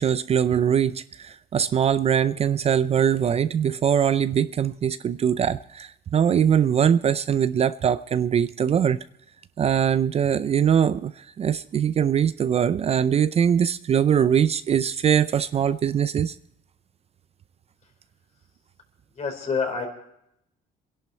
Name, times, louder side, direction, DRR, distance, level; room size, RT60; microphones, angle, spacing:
voice 1, 0.0-9.0 9.6-16.3, right 8 dB, 40° right, 0.5 m, -22 dB
voice 2, 19.2-19.9, left 5 dB, 45° left, 4.4 m, -27 dB
24.5 x 11.0 x 4.4 m
cardioid pair, 110°, 17 cm